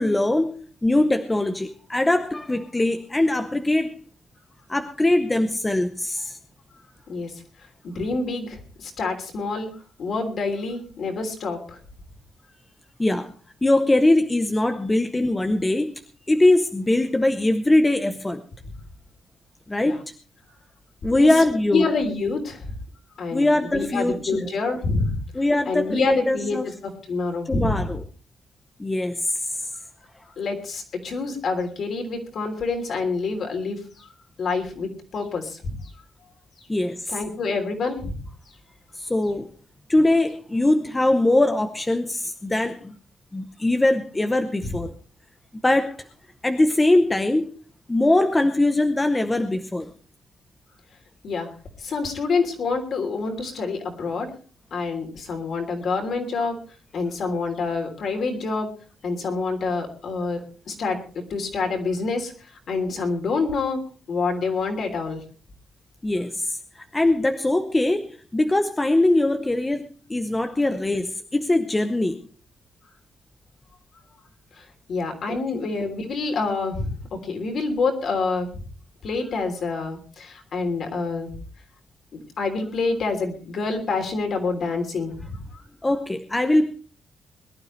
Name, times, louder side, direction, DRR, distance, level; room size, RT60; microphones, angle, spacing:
voice 1, 0.0-3.9 4.7-6.4 13.0-13.3 13.6-15.9 16.3-18.4 19.7-20.1 21.0-21.9 23.3-24.5 25.3-26.7 27.5-28.0 28.8-29.7 36.7-37.1 38.9-39.5 39.9-43.0 43.3-44.9 45.6-46.1 46.4-47.5 47.9-49.9 66.0-72.3 75.3-75.4 85.8-86.7, left 1 dB, 10° left, 7 dB, 0.8 m, -22 dB
voice 2, 7.8-9.7 10.0-11.8 18.6-18.7 19.8-20.0 21.1-21.3 21.7-22.7 23.2-23.5 23.7-25.2 25.6-27.9 30.4-34.1 34.4-35.7 37.1-38.2 51.2-51.5 51.8-54.3 54.7-56.6 56.9-58.7 59.0-63.8 64.1-65.2 74.5-76.9 77.2-78.6 79.0-81.3 82.1-85.4, left 4 dB, 50° left, 3 dB, 3.2 m, -27 dB
22.0 x 12.0 x 3.2 m, 0.38 s
wide cardioid pair, 175°, 0 cm